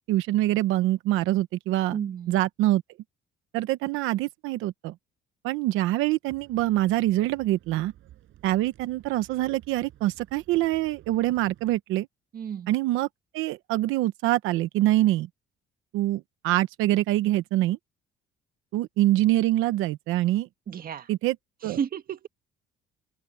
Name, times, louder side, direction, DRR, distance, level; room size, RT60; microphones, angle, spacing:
voice 1, 0.1-2.0 2.3-2.8 3.5-4.9 5.4-7.9 8.4-12.1 12.7-13.1 13.3-15.3 15.9-17.8 18.7-20.5 21.1-21.4 21.6-21.8, right 16 dB, 90° right, 0.9 m, -25 dB
voice 2, 1.9-2.4 12.3-12.7 20.7-21.1 21.6-22.3, right 8 dB, 45° right, 1.8 m, -32 dB
sound 1, 6.3-11.8, right 13 dB, 70° right, 7.1 m, -54 dB
open air
cardioid pair, 110°, 20 cm